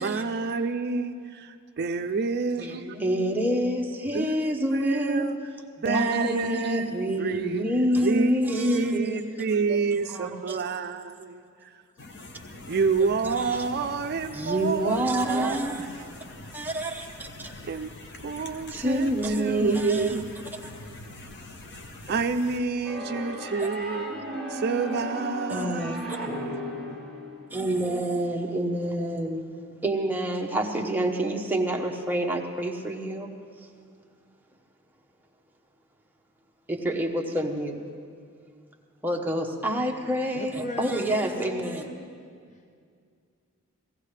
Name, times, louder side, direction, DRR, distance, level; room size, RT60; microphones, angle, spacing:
voice 1, 0.0-2.8 4.1-4.4 4.6-5.4 5.8-7.6 8.0-11.7 12.7-16.0 17.6-17.9 18.2-20.2 22.1-24.2 24.5-27.0, right 4 dB, 50° right, 9 dB, 0.4 m, -29 dB
voice 2, 2.6-5.2 5.8-9.2 10.1-10.6 13.3-13.7 14.3-15.9 16.5-17.6 18.7-20.2 23.6-23.7 24.9-25.0 25.5-26.2 27.5-29.5 29.8-33.3 36.7-37.8 39.0-41.8, right 1 dB, 10° right, 1 dB, 0.9 m, -27 dB
sound 1, 12.0-22.6, left 2 dB, 55° left, 0.9 m, -44 dB
sound 2, 22.8-27.6, equal, 10° left, 2.2 m, -35 dB
voice 3, 40.3-42.1, equal, 35° left, 4 dB, 0.6 m, -38 dB
17.5 x 15.5 x 3.3 m, 2.2 s
head